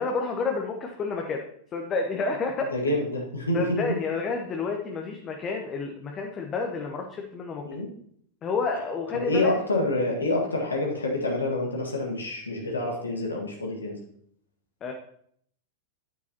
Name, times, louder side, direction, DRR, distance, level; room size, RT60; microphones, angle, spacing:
voice 1, 0.0-1.4 1.7-2.7 3.5-7.7 8.4-9.5 14.8-14.9, left 4 dB, 30° left, 2 dB, 1.1 m, -29 dB
voice 2, 2.7-3.9 7.6-7.9 9.1-14.0, left 1 dB, 75° left, -1 dB, 1.8 m, -27 dB
9.7 x 8.9 x 3.0 m, 0.66 s
figure-of-eight pair, 90°, 0 cm